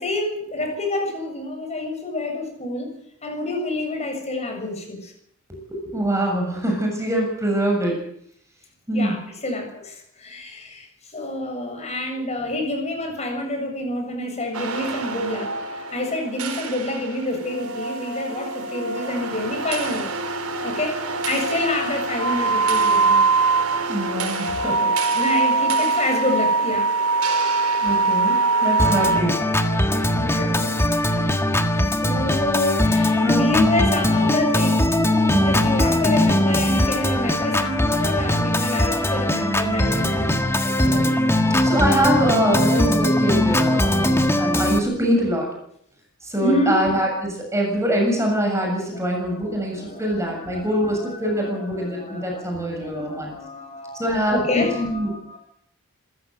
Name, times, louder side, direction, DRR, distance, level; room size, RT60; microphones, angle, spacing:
voice 1, 0.0-5.1 8.9-10.9 11.1-23.3 25.1-30.8 32.0-40.8 41.2-41.7 46.4-46.8 49.0-55.4, left 1 dB, 30° left, 3 dB, 7.5 m, -28 dB
voice 2, 5.8-8.0 8.9-9.2 23.9-24.9 27.8-29.4 33.2-33.7 35.3-35.7 39.4-39.8 40.8-41.1 41.6-45.5 46.2-53.3 54.0-55.1, equal, 15° right, 1 dB, 7.2 m, -24 dB
sound 1, 14.5-29.2, right 4 dB, 90° right, 4.3 m, -23 dB
Organ, 28.8-44.8, left 1 dB, 10° left, 1.7 m, -20 dB
26.5 x 15.0 x 8.0 m, 0.69 s
head